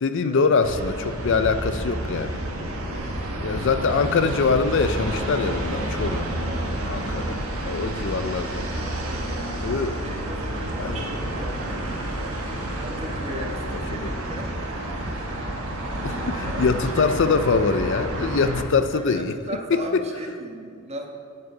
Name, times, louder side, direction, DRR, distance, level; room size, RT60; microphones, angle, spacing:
voice 1, 0.0-2.4 3.4-6.3 6.9-7.4 7.6-8.6 9.6-9.9 10.8-11.0 13.4-13.8 16.0-19.3 19.7-20.0, left 4 dB, 60° left, 10 dB, 0.5 m, -23 dB
sound 1, 0.6-18.6, right 1 dB, 90° right, 1.5 m, -29 dB
voice 2, 8.2-12.5 12.8-14.5 16.4-17.4 18.9-21.1, right 1 dB, 30° right, 1 dB, 1.2 m, -38 dB
9.5 x 7.7 x 5.6 m, 2.5 s
head